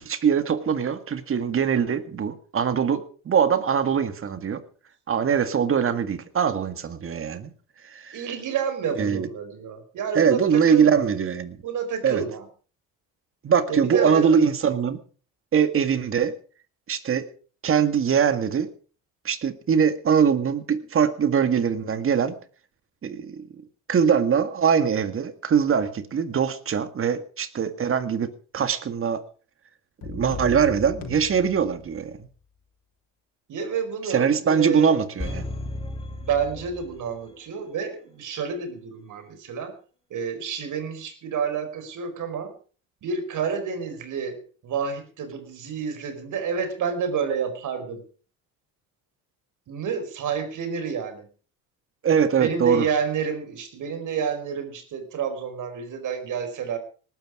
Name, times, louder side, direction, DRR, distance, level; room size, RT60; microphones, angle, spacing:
voice 1, 0.0-4.6 5.1-7.5 7.8-8.2 9.0-9.3 10.1-11.6 12.0-12.2 13.4-15.0 15.5-16.3 16.9-17.2 17.6-18.7 19.2-22.4 23.0-23.6 23.9-29.2 30.0-32.3 34.1-35.5 52.0-52.9, right 7 dB, 35° right, 10 dB, 2.0 m, -22 dB
voice 2, 8.1-11.1 11.6-12.5 13.7-14.4 33.5-35.0 36.1-39.7 40.1-42.5 43.0-48.0 49.7-51.3 52.4-56.8, right 6 dB, 55° right, 9 dB, 4.8 m, -29 dB
sound 1, 30.0-32.3, left 5 dB, 65° left, 4.8 m, -37 dB
sound 2, 35.2-37.4 37.7-37.8, left 2 dB, 15° left, 2.4 m, -34 dB
19.0 x 12.5 x 5.0 m, 0.40 s
cardioid pair, 115°, 36 cm